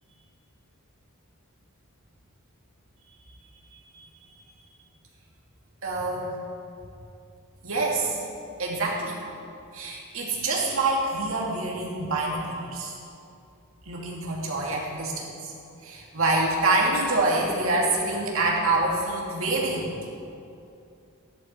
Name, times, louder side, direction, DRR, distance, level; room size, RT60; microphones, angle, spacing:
voice 1, 5.8-6.4 7.6-8.2 8.6-9.2 9.7-13.0 13.9-15.2 15.8-19.9, right 2 dB, 65° right, -3 dB, 2.6 m, -26 dB
15.0 x 11.0 x 4.5 m, 2.6 s
head